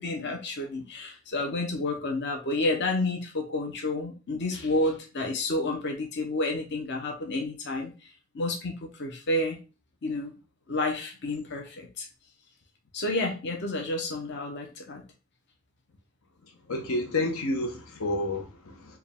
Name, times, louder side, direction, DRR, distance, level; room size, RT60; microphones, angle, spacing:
voice 1, 0.0-7.9 8.3-9.6 10.0-10.3 10.7-12.1 12.9-15.0, left 2 dB, 55° left, 0.8 m, -30 dB
voice 2, 16.7-19.0, left 2 dB, 80° left, 0.8 m, -30 dB
4.6 x 2.3 x 3.6 m
head